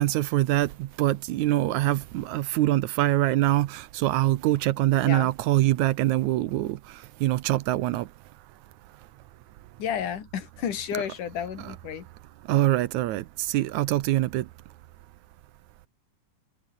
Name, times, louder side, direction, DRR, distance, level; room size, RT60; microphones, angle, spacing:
voice 1, 0.0-8.1 12.5-14.5, right 16 dB, 75° right, 2.0 m, -24 dB
voice 2, 9.8-12.1, left 8 dB, 70° left, 3.9 m, -31 dB
omnidirectional pair, 3.8 m